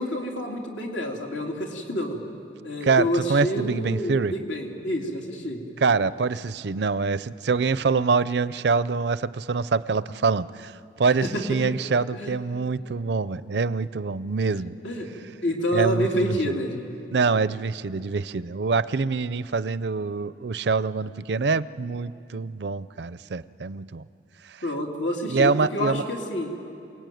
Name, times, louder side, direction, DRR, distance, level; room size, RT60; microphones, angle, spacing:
voice 1, 0.0-2.2 2.6-5.6 11.2-11.6 12.1-12.3 14.8-15.1 15.4-16.8 24.6-26.6, equal, 85° left, 0 dB, 3.2 m, -28 dB
voice 2, 2.8-4.3 5.8-14.8 15.7-16.5 17.1-24.0 24.5-24.6 25.3-26.0, right 4 dB, 65° right, 16 dB, 0.5 m, -25 dB
28.0 x 18.5 x 9.3 m, 2.6 s
head